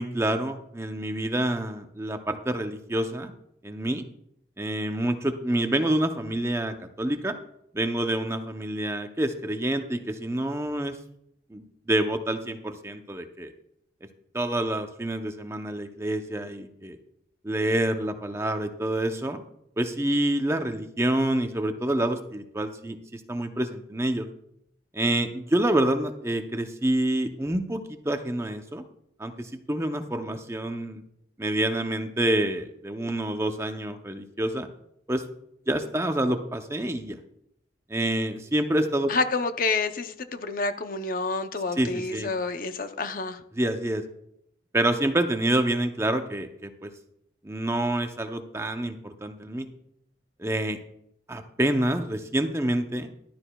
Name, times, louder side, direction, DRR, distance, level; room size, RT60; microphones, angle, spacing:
voice 1, 0.0-3.3 3.6-4.0 4.6-7.3 7.7-11.0 11.5-13.5 14.3-17.0 17.4-19.4 19.8-24.3 24.9-28.8 29.2-31.0 31.4-34.7 35.1-35.2 35.7-37.2 37.9-39.1 41.8-42.3 43.5-44.0 44.7-46.9 47.4-49.7 50.4-50.8 51.3-53.1, right 1 dB, 15° right, 6 dB, 0.6 m, -27 dB
voice 2, 39.1-43.4, left 3 dB, 50° left, 9 dB, 0.6 m, -28 dB
14.0 x 12.0 x 2.3 m, 0.75 s
head